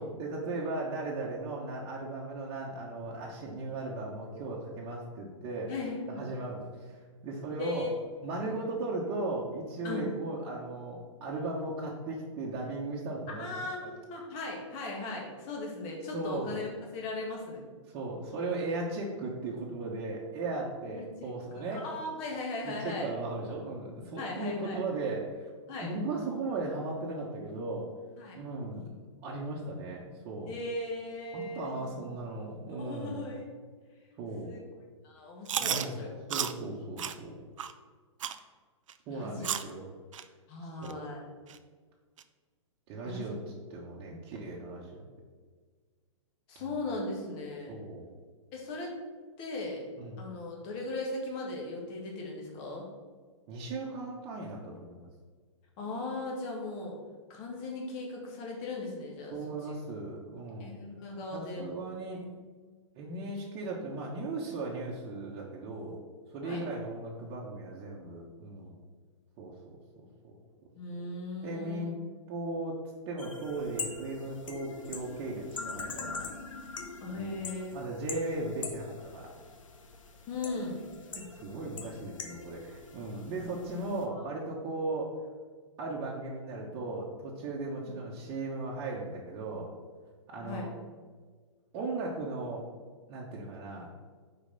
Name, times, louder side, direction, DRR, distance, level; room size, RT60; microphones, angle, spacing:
voice 1, 0.0-5.7 6.1-7.0 7.2-7.9 8.2-13.5 13.8-13.9 16.1-16.6 17.9-21.8 22.6-25.5 25.8-27.9 28.3-28.9 29.2-30.5 31.3-33.2 34.2-34.5 35.6-36.0 36.3-37.4 39.1-39.9 40.6-41.0 42.9-43.4 43.7-45.1 47.7-48.1 50.0-50.2 53.5-55.1 59.3-60.7 61.3-62.2 63.0-66.0 66.3-68.8 69.4-69.8 70.2-70.3 71.4-72.0 72.3-72.8 73.1-76.3 77.1-77.4 77.7-79.3 81.1-85.1 85.8-89.7 90.3-90.7 91.7-92.7 93.1-93.9, right 2 dB, 35° right, -5 dB, 1.1 m, -37 dB
voice 2, 5.7-6.3 7.6-7.9 9.8-10.1 13.4-17.6 20.9-23.1 24.2-24.8 25.7-25.9 28.2-28.4 30.5-32.0 32.8-33.5 34.4-34.6 35.0-36.1 39.1-39.5 40.5-41.2 43.0-43.3 44.1-44.2 46.5-47.7 48.5-48.9 49.4-49.8 50.2-52.8 55.8-57.0 57.3-59.4 60.6-61.7 66.4-66.6 70.7-71.9 77.0-77.8 80.3-80.9 84.0-84.2 87.8-87.9 90.4-90.7, left 2 dB, 35° left, -1 dB, 1.7 m, -38 dB
Chewing mastication, 35.5-35.9 36.3-36.5 37.0-37.1 37.6-37.7 38.2-38.4 38.9-39.0 39.4-39.7 40.1-40.2 40.8-40.9 41.5-41.6 42.2-42.3, right 9 dB, 75° right, 0.5 m, -32 dB
sound 1, 73.2-84.0, left 4 dB, 80° left, 0.9 m, -43 dB
5.2 x 4.6 x 5.3 m, 1.5 s
hypercardioid pair, 125°, 17 cm